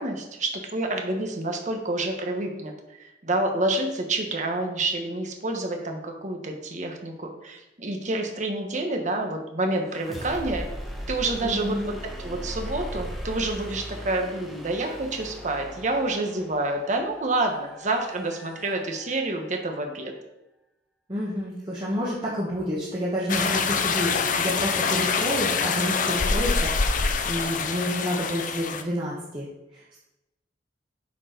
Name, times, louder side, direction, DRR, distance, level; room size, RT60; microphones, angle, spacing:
voice 1, 0.0-2.7 3.0-10.7 11.1-20.1, right 2 dB, 40° right, 3 dB, 1.2 m, -28 dB
sound 1, 9.8-19.6, equal, ahead, 1.1 m, -39 dB
voice 2, 11.4-11.9 21.1-29.5 29.7-30.0, equal, 25° right, -6 dB, 1.4 m, -29 dB
sound 2, 23.3-28.8, left 5 dB, 45° left, 0.6 m, -25 dB
8.3 x 4.6 x 5.3 m, 0.94 s
head